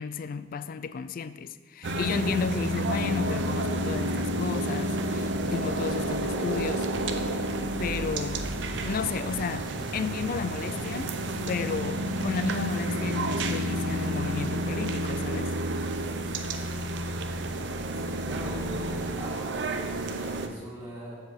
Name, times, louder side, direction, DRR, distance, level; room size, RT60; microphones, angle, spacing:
voice 1, 0.0-6.9 7.8-11.2 11.5-15.5, left 5 dB, 50° left, 0.3 m, -33 dB
sound 1, 1.8-20.5, right 1 dB, 70° right, 0.7 m, -30 dB
voice 2, 17.9-21.2, equal, 25° right, 2.0 m, -40 dB
7.7 x 4.5 x 7.1 m
head